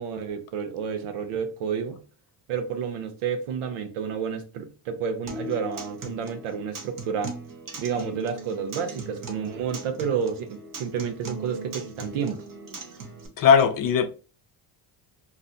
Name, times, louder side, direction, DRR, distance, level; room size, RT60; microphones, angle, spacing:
voice 1, 0.0-2.0 2.5-7.3 7.8-12.4, right 7 dB, 80° right, 0.8 m, -30 dB
Acoustic guitar, 5.3-13.3, right 3 dB, 40° right, 0.8 m, -39 dB
voice 2, 13.4-14.1, left 6 dB, 45° left, 0.4 m, -18 dB
2.5 x 2.1 x 3.8 m
cardioid pair, 110°, 49 cm